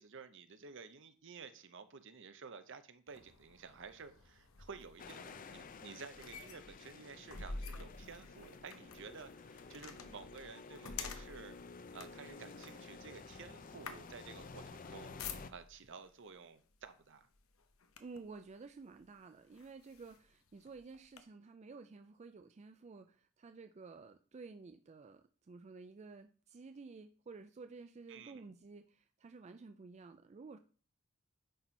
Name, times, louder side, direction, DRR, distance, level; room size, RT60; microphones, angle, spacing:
voice 1, 0.0-11.6 11.9-15.1 15.5-17.3 28.1-28.4, right 5 dB, 60° right, 11 dB, 0.8 m, -52 dB
sound 1, 3.1-15.9 16.7-17.0 17.3-18.4 19.0-19.1 19.5-21.2, left 4 dB, 85° left, 0.9 m, -50 dB
sound 2, 5.0-15.5, left 4 dB, 40° left, 0.5 m, -52 dB
voice 2, 18.0-30.6, right 4 dB, 35° right, 8 dB, 0.4 m, -52 dB
10.0 x 4.3 x 4.5 m, 0.40 s
head